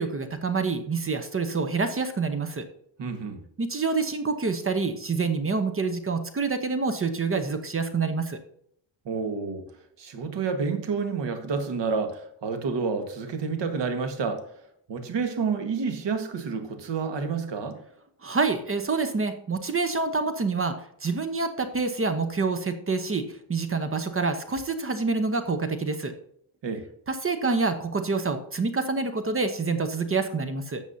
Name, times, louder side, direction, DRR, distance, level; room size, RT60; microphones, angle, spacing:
voice 1, 0.0-2.6 3.6-8.4 18.2-20.8 21.0-26.1 27.1-30.8, right 4 dB, 25° right, 8 dB, 0.9 m, -27 dB
voice 2, 3.0-3.4 9.0-9.6 10.0-14.5 14.9-17.8 26.6-26.8, right 5 dB, 60° right, 7 dB, 1.7 m, -29 dB
12.5 x 7.2 x 2.8 m, 0.69 s
cardioid pair, 130°, 49 cm